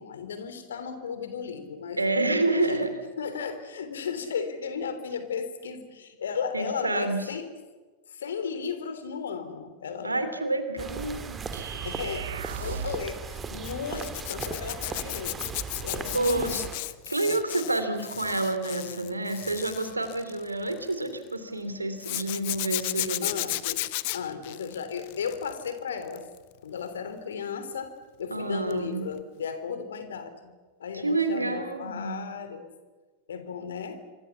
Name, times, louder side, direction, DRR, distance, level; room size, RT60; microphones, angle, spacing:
voice 1, 0.0-2.0 2.5-2.8 3.2-7.5 8.1-10.2 11.6-15.4 15.8-16.7 23.2-23.9 24.1-26.3 26.6-30.5 30.8-32.7 33.3-34.0, left 6 dB, 65° left, 10 dB, 3.3 m, -35 dB
voice 2, 2.0-3.0 6.5-7.2 10.0-11.5 16.1-16.6 17.1-23.4 28.3-29.1 30.9-32.2, right 2 dB, 80° right, 9 dB, 3.1 m, -28 dB
sound 1, 10.8-16.8, right 5 dB, 20° right, 2.4 m, -37 dB
sound 2, 11.5-13.1, right 8 dB, 65° right, 1.3 m, -36 dB
Zipper (clothing), 13.6-21.1 22.0-25.7 26.0-26.4 28.7-28.9 29.1-29.2, left 21 dB, 50° left, 1.0 m, -34 dB
27.5 x 24.5 x 7.1 m, 1.3 s
figure-of-eight pair, 90°, 0 cm